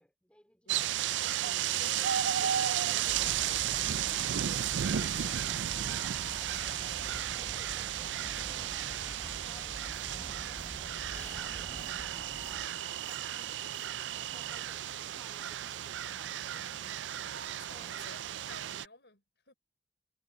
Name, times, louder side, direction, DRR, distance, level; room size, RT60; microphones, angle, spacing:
voice 1, 0.0-1.9 6.8-10.8 11.3-16.4 17.7-18.1, left 1 dB, 5° left, 2.7 m, -60 dB
voice 2, 0.6-1.2 1.7-6.1 16.1-19.5, left 3 dB, 70° left, 5.0 m, -54 dB
sound 1, 0.7-18.8, right 10 dB, 90° right, 0.4 m, -34 dB
sound 2, 2.1-2.8 3.7-4.5 4.8-5.5 5.9-7.1 8.6-9.9 11.1-11.4, left 7 dB, 40° left, 4.3 m, -53 dB
sound 3, 3.0-12.7, right 1 dB, 15° right, 0.4 m, -46 dB
head